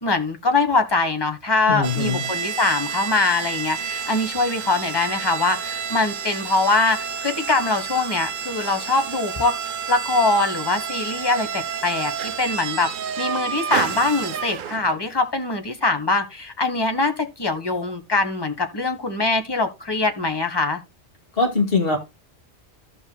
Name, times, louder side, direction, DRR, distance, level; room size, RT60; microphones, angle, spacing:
voice 1, 0.0-9.5 9.9-12.9 13.2-20.8, left 3 dB, 20° left, 1.3 m, -23 dB
voice 2, 1.7-2.2 21.3-22.0, left 3 dB, 50° left, 2.4 m, -21 dB
sound 1, 1.8-15.1, right 7 dB, 55° right, 0.6 m, -30 dB
15.5 x 5.4 x 2.2 m
omnidirectional pair, 1.2 m